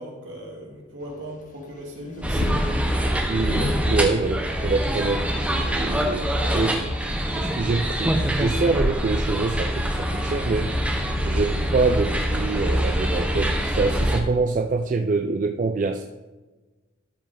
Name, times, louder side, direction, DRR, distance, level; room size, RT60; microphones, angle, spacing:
voice 1, 0.0-2.4, equal, 65° right, -2 dB, 2.2 m, -38 dB
sound 1, 1.0-11.9, left 3 dB, 40° left, 0.3 m, -36 dB
sound 2, 2.2-14.2, equal, 5° right, 0.7 m, -24 dB
voice 2, 3.3-7.0 7.3-10.8 11.2-16.0, right 3 dB, 40° right, 5 dB, 0.3 m, -25 dB
12.5 x 5.2 x 3.7 m, 1.2 s
head